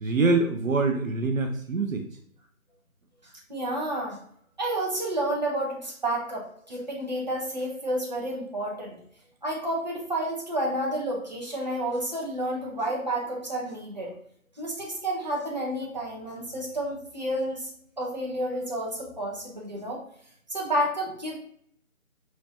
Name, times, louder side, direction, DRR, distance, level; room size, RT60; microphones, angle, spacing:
voice 1, 0.0-2.1, right 3 dB, 65° right, 4 dB, 0.8 m, -24 dB
voice 2, 3.5-4.2 4.6-9.0 9.4-14.1 14.6-17.7 18.0-20.0 20.5-21.4, right 1 dB, 30° right, -3 dB, 1.2 m, -30 dB
5.9 x 3.2 x 2.8 m, 0.64 s
figure-of-eight pair, 175°, 43 cm